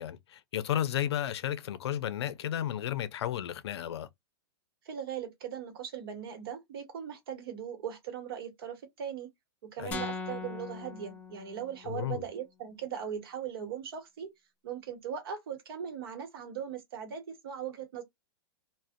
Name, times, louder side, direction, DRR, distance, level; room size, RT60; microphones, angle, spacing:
voice 1, 0.0-4.1 9.8-10.0 11.8-12.2, left 11 dB, 75° left, 0.5 m, -33 dB
voice 2, 4.8-9.3 9.6-14.3 14.6-18.0, right 8 dB, 60° right, 0.9 m, -39 dB
sound 1, 9.9-12.0, left 4 dB, 10° left, 0.5 m, -40 dB
2.5 x 2.1 x 2.4 m
hypercardioid pair, 155°, 14 cm